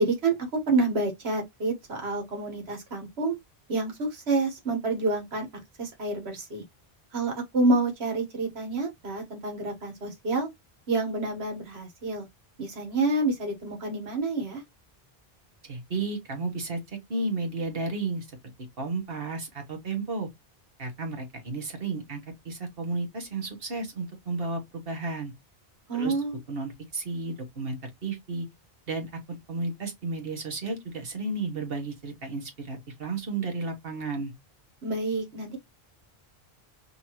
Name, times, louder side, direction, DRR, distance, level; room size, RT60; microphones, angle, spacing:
voice 1, 0.0-3.3 3.7-5.5 5.8-6.6 7.1-10.5 10.9-12.3 12.6-14.6 25.9-26.4 34.8-35.6, right 2 dB, 90° right, 1.6 m, -28 dB
voice 2, 15.6-18.3 18.8-20.3 20.8-22.2 22.4-25.3 25.9-28.5 28.9-34.3, right 3 dB, 65° right, 1.6 m, -33 dB
5.6 x 2.8 x 3.0 m
omnidirectional pair, 1.0 m